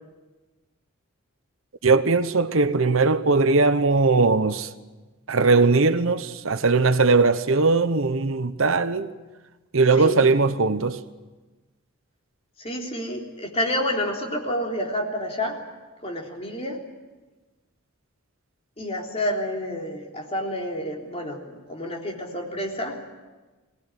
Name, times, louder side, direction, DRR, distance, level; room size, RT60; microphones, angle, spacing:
voice 1, 1.8-4.7 5.3-9.1 9.7-11.0, right 3 dB, 70° right, 1.0 m, -19 dB
voice 2, 9.9-10.3 12.6-15.6 16.0-16.8 18.8-23.0, left 1 dB, 30° left, 3.6 m, -29 dB
23.0 x 18.5 x 9.9 m
head